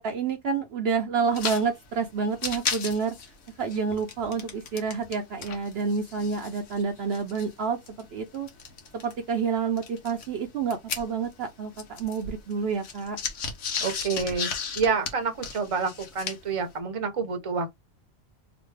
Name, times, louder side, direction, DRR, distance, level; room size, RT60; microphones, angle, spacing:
voice 1, 0.0-3.2 3.6-8.5 8.9-13.2, right 5 dB, 65° right, 0.8 m, -29 dB
sound 1, 1.3-1.6 1.9-2.0 2.3-5.2 5.4-9.1 9.8-11.5 11.7-16.6, left 6 dB, 85° left, 1.2 m, -35 dB
voice 2, 13.8-17.7, right 5 dB, 35° right, 0.7 m, -28 dB
3.1 x 2.5 x 3.2 m
omnidirectional pair, 1.2 m